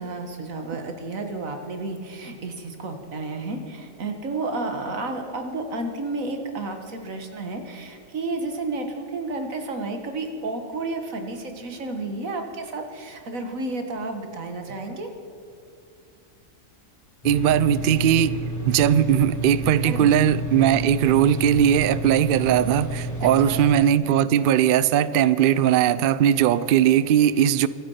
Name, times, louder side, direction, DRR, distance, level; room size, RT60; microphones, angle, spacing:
voice 1, 0.0-15.1 19.8-20.1 23.2-23.6, right 2 dB, 80° right, 5 dB, 2.0 m, -31 dB
sound 1, 17.2-23.6, right 1 dB, 15° left, 1.6 m, -31 dB
voice 2, 17.2-18.4 18.6-27.7, right 10 dB, 65° right, 16 dB, 0.5 m, -19 dB
25.0 x 8.6 x 5.6 m, 2.4 s
omnidirectional pair, 1.4 m